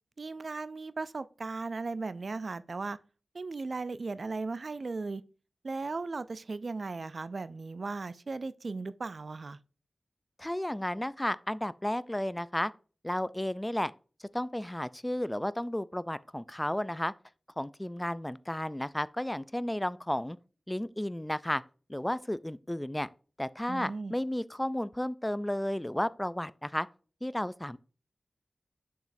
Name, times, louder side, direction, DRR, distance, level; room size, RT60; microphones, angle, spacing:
voice 1, 0.2-3.0 3.3-5.2 5.6-9.6 23.7-24.1, right 3 dB, 65° right, 0.3 m, -37 dB
voice 2, 10.4-12.7 13.0-13.9 14.2-17.1 17.6-20.4 20.7-21.6 21.9-23.1 23.4-26.9 27.2-27.8, left 1 dB, 10° left, 0.3 m, -33 dB
6.9 x 6.2 x 2.6 m
wide cardioid pair, 60°, 0 cm